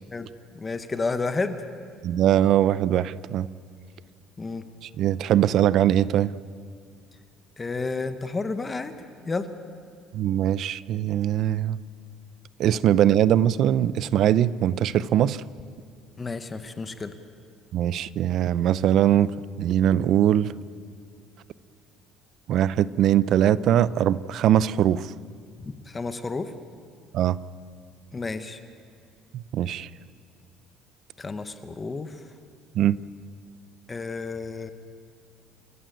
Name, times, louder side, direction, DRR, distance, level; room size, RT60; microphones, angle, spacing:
voice 1, 0.5-1.6 4.4-4.6 7.6-8.9 9.3-9.5 16.2-17.1 25.6-26.5 28.1-28.6 31.2-32.2 33.9-34.7, left 3 dB, 20° left, 9 dB, 1.0 m, -31 dB
voice 2, 2.0-3.5 4.8-6.3 10.1-11.8 12.6-15.4 17.7-20.5 22.5-25.1 27.1-27.4 29.3-29.9 32.7-33.0, right 11 dB, 50° right, 18 dB, 0.6 m, -21 dB
28.5 x 14.0 x 9.3 m, 2.3 s
cardioid pair, 150°, 0 cm